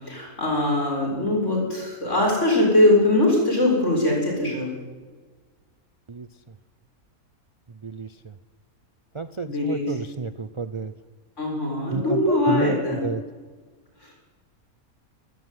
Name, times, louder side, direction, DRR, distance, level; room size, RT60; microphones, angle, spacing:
voice 1, 0.0-4.7 9.4-9.9 11.4-13.2 14.0-14.2, left 1 dB, 55° left, -1 dB, 7.5 m, -22 dB
voice 2, 7.8-8.3 9.1-10.9 11.9-13.2, right 4 dB, 35° right, 13 dB, 0.5 m, -30 dB
24.0 x 13.5 x 9.6 m, 1.4 s
omnidirectional pair, 1.5 m